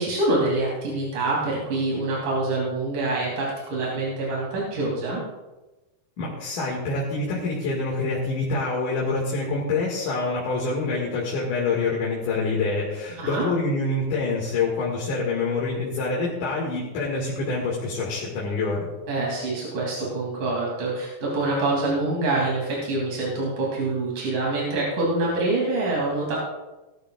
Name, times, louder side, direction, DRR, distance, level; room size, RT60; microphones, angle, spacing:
voice 1, 0.0-5.2 13.1-13.4 19.1-26.4, right 2 dB, 80° right, -4 dB, 4.4 m, -25 dB
voice 2, 6.2-18.9, left 3 dB, 75° left, -4 dB, 3.4 m, -26 dB
18.5 x 13.0 x 2.4 m, 1.1 s
omnidirectional pair, 3.7 m